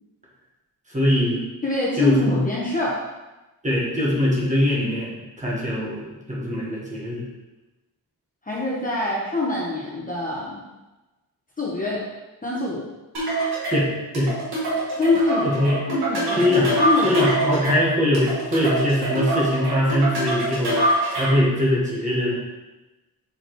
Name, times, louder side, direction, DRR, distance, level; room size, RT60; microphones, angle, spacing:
voice 1, 0.9-1.4 2.0-2.4 3.6-7.2 13.7-14.3 15.4-15.8 16.3-16.8 17.0-22.4, left 1 dB, 20° right, -5 dB, 1.3 m, -22 dB
voice 2, 1.6-3.0 8.5-10.6 11.6-12.0 12.4-12.8 15.0-15.6 15.9-17.5, left 2 dB, 20° left, -5 dB, 1.0 m, -25 dB
sound 1, 13.1-21.5, right 1 dB, 85° right, 2.0 m, -25 dB
6.8 x 4.8 x 3.1 m, 1.1 s
wide cardioid pair, 180°, 37 cm